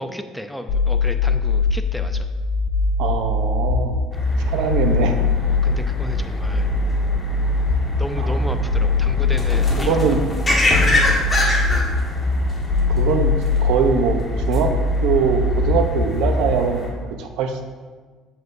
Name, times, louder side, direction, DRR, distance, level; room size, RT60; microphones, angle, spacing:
voice 1, 0.0-2.3 4.6-4.7 5.5-6.7 8.0-10.0 11.7-11.9, equal, ahead, 7 dB, 0.5 m, -33 dB
sound 1, 0.7-16.7, left 3 dB, 70° left, 0.8 m, -21 dB
voice 2, 3.0-4.1 4.5-5.1 8.2-8.4 9.8-10.2 12.9-13.3 13.6-14.7 15.0-16.9 17.2-17.6, right 6 dB, 80° right, 6 dB, 0.7 m, -22 dB
sound 2, 4.1-16.9, left 1 dB, 20° left, 1.6 m, -26 dB
7.7 x 7.6 x 2.7 m, 1.4 s
cardioid pair, 120°, 0 cm